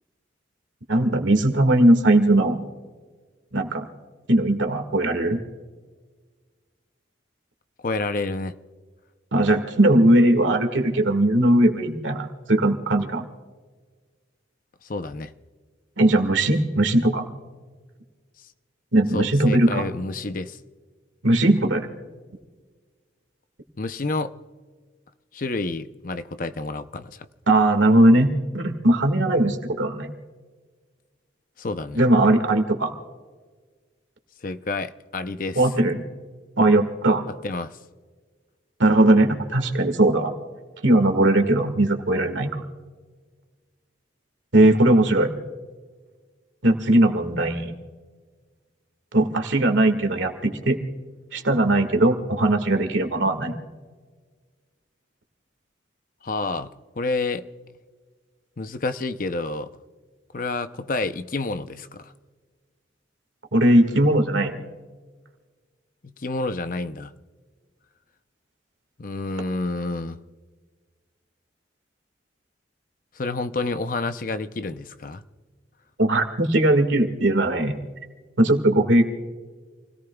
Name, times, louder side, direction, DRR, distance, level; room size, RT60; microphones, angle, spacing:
voice 1, 0.9-2.6 3.5-3.9 4.3-5.4 9.3-13.2 16.0-17.3 18.9-19.8 21.2-21.9 27.5-30.1 31.9-32.9 35.6-36.0 36.6-37.2 38.8-40.3 40.8-42.6 44.5-45.3 46.6-47.7 49.1-50.8 51.3-53.6 63.5-64.6 76.0-77.8 78.4-79.0, right 1 dB, 85° right, 6 dB, 1.9 m, -19 dB
voice 2, 7.8-8.5 14.8-15.3 19.1-20.6 23.8-24.3 25.3-27.3 31.6-32.0 34.4-35.6 37.4-37.8 56.2-57.4 58.6-59.7 60.3-62.1 66.0-67.1 69.0-70.2 73.2-75.2, left 3 dB, 45° left, 10 dB, 0.6 m, -29 dB
28.5 x 17.5 x 2.3 m, 1.5 s
head